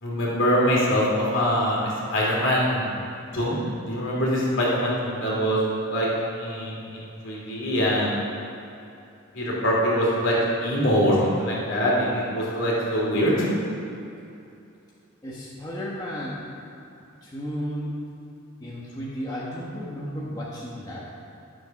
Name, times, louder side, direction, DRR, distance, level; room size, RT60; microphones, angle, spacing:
voice 1, 0.0-3.0 3.3-5.6 5.9-6.1 6.4-8.2 9.3-13.5, equal, 60° left, -5 dB, 3.0 m, -23 dB
voice 2, 15.2-16.4 17.2-18.0 18.6-21.3, equal, 20° left, -6 dB, 1.3 m, -33 dB
12.0 x 7.7 x 5.9 m, 2.7 s
head